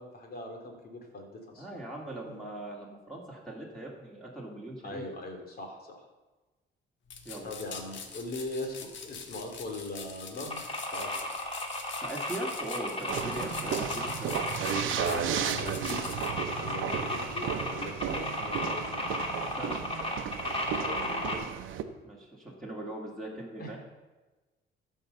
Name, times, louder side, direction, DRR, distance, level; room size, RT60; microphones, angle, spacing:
voice 1, 0.0-1.8 4.8-6.0 7.4-8.8 9.0-10.7 10.9-11.2 13.3-13.5 15.0-16.3 16.6-19.0 20.8-21.5 23.6-23.8, left 2 dB, 50° left, 2 dB, 3.0 m, -40 dB
voice 2, 1.6-5.0 7.2-7.5 12.0-14.4 19.5-19.8 22.0-23.8, right 1 dB, ahead, -5 dB, 2.7 m, -40 dB
sound 1, 7.1-16.3, left 6 dB, 70° left, 1.4 m, -44 dB
sound 2, 10.5-21.3, left 1 dB, 30° left, 2.6 m, -34 dB
sound 3, 13.1-21.8, right 9 dB, 80° right, 0.8 m, -34 dB
14.0 x 5.6 x 6.7 m, 1.2 s
cardioid pair, 90°, 20 cm